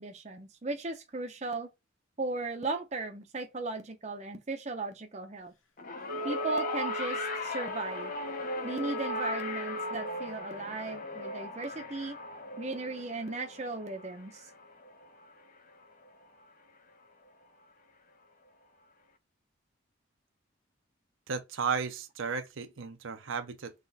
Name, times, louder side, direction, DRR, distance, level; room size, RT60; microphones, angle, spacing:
voice 1, 0.0-1.7 2.2-5.5 6.2-8.1 8.6-12.2 12.6-14.5, right 3 dB, 35° right, 0.6 m, -36 dB
sound 1, 5.8-16.2 17.3-17.4, left 2 dB, 40° left, 0.6 m, -39 dB
Wind instrument woodwind instrument, 6.1-10.2, equal, 75° left, 0.8 m, -39 dB
voice 2, 21.3-23.7, right 5 dB, 75° right, 0.7 m, -34 dB
4.0 x 3.0 x 3.9 m
head